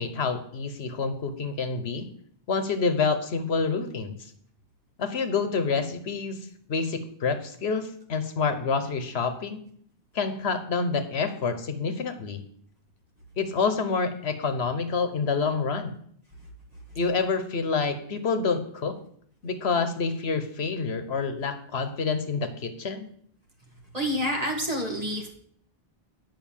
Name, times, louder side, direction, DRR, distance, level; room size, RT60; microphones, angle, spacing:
voice 1, 0.0-2.1 2.5-4.2 5.0-6.4 6.7-9.6 10.1-12.4 13.4-15.9 16.9-19.0 19.4-23.1, left 4 dB, 85° left, 9 dB, 1.3 m, -27 dB
voice 2, 23.9-25.3, equal, 40° right, 0 dB, 2.0 m, -28 dB
9.5 x 5.6 x 7.2 m, 0.62 s
omnidirectional pair, 1.0 m